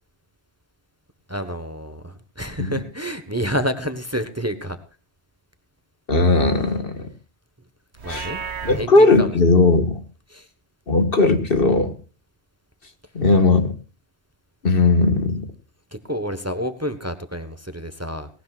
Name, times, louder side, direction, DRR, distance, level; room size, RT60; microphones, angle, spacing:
voice 1, 1.3-4.8 8.0-9.4 10.3-10.5 15.9-18.3, equal, 15° right, 10 dB, 1.2 m, -29 dB
voice 2, 6.1-6.9 8.1-8.3 8.6-10.0 10.9-11.9 13.2-13.7 14.6-15.4, left 3 dB, 60° left, 8 dB, 1.9 m, -17 dB
Livestock farm animals working animals, 7.9-8.8, right 6 dB, 80° right, 1.7 m, -32 dB
18.5 x 18.5 x 2.5 m, 0.33 s
omnidirectional pair, 1.1 m